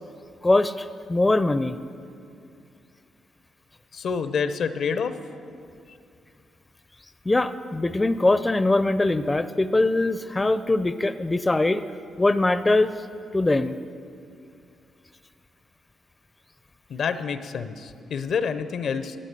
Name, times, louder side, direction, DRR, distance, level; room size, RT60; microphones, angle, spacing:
voice 1, 0.4-1.8 7.3-11.8 12.2-12.9 13.3-13.8, left 2 dB, 20° left, 12 dB, 0.5 m, -22 dB
voice 2, 3.9-5.1 16.9-19.2, left 6 dB, 70° left, 12 dB, 0.6 m, -27 dB
13.0 x 8.8 x 6.7 m, 2.5 s
supercardioid pair, 60°, 0 cm